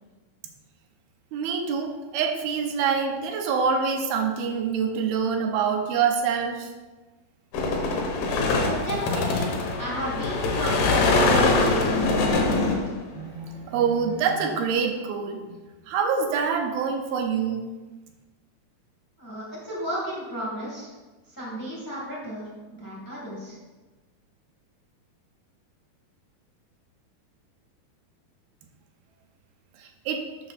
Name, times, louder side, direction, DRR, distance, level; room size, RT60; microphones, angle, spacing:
voice 1, 1.3-6.7 13.1-15.6 15.9-17.7 29.8-30.2, right 6 dB, 80° right, 4 dB, 2.6 m, -26 dB
sound 1, 7.5-13.0, left 3 dB, 70° left, 2.3 m, -23 dB
voice 2, 8.3-12.8 19.2-20.9 21.3-22.5 22.8-23.6, equal, 15° left, -6 dB, 0.7 m, -33 dB
6.8 x 6.5 x 4.1 m, 1.2 s
omnidirectional pair, 4.5 m